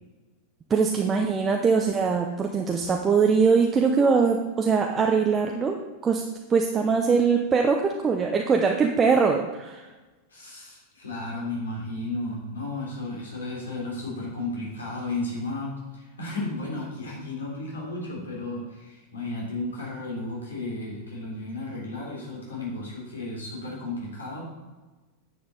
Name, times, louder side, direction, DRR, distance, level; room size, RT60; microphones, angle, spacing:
voice 1, 0.7-5.8 6.0-6.2 6.5-9.9, right 5 dB, 20° right, 2 dB, 0.7 m, -22 dB
voice 2, 10.3-24.4, left 2 dB, 70° left, -3 dB, 3.3 m, -33 dB
9.5 x 7.1 x 4.0 m, 1.2 s
figure-of-eight pair, 90°, 0 cm